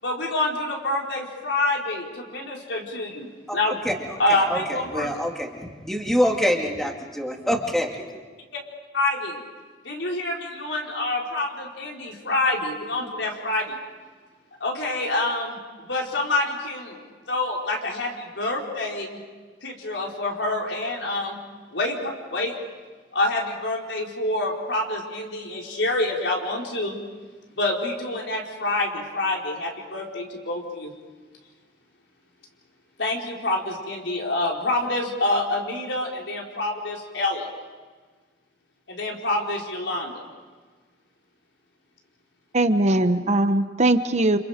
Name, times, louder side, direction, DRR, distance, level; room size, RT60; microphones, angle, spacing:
voice 1, 0.0-3.8 4.2-5.1 8.9-9.4 9.8-13.8 14.6-19.2 19.6-21.4 21.7-22.5 23.1-27.0 27.6-30.9 33.0-37.5 38.9-40.2, left 2 dB, 80° left, -1 dB, 4.6 m, -27 dB
voice 2, 4.4-8.0, equal, ahead, 1 dB, 2.3 m, -25 dB
voice 3, 42.5-44.4, right 2 dB, 40° right, 9 dB, 1.0 m, -20 dB
29.5 x 28.0 x 5.1 m, 1.4 s
head